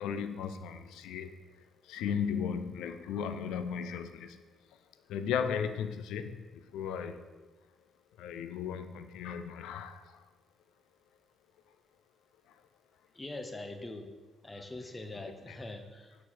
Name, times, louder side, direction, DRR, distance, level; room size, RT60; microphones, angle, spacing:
voice 1, 0.0-1.4 1.8-4.4 5.1-7.2 8.2-10.3 12.5-12.6 15.2-15.6, left 7 dB, 90° left, 9 dB, 0.4 m, -36 dB
voice 2, 13.1-14.1 14.4-16.2, left 2 dB, 20° left, 6 dB, 0.8 m, -43 dB
7.0 x 4.5 x 4.3 m, 1.3 s
cardioid pair, 90°, 0 cm